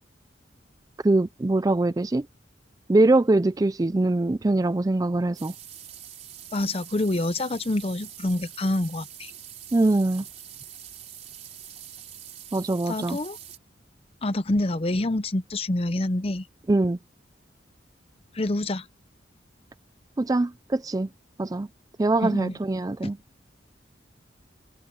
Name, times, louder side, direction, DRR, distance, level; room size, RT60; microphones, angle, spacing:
voice 1, 1.0-2.3 2.9-5.5 9.7-10.3 12.5-13.2 16.7-17.0 20.2-21.1 21.4-21.7 22.0-23.2, right 2 dB, 20° right, 0.4 m, -23 dB
sound 1, 5.3-13.6, right 10 dB, 40° right, 4.2 m, -44 dB
voice 2, 6.5-9.3 12.9-13.4 14.2-16.4 18.3-18.8 22.2-22.5, left 1 dB, 35° left, 0.7 m, -27 dB
head